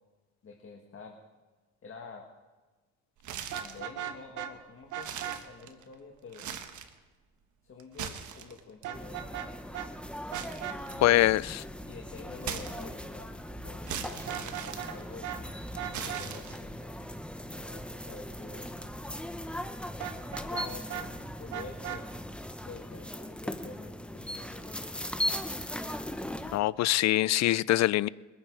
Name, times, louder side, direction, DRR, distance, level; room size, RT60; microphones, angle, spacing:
voice 1, 0.4-1.2 1.8-2.3 3.5-6.5 7.6-9.3 10.9-11.2 11.9-15.3 16.0-16.9 17.5-18.7 20.5-22.1 22.6-24.8, left 5 dB, 45° left, 1 dB, 1.7 m, -48 dB
sound 1, 3.2-3.9 4.4-4.5 4.9-5.9 6.3-7.0 7.8-8.8 10.3-11.4 12.4-13.2 13.9-15.4 15.9-16.8, right 8 dB, 75° right, 1.3 m, -40 dB
Vehicle horn car horn honking, 3.4-4.5 4.9-5.4 8.8-9.5 9.7-9.9 10.3-10.8 14.2-15.0 15.2-15.4 15.8-16.3 20.0-21.1 21.5-22.0, right 11 dB, 90° right, 1.0 m, -37 dB
sound 2, 8.9-26.6, equal, 5° left, 0.9 m, -39 dB
voice 2, 11.0-11.6 26.5-28.1, left 15 dB, 65° left, 21 dB, 0.4 m, -24 dB
22.0 x 8.9 x 4.8 m, 1.3 s
cardioid pair, 90°, 30 cm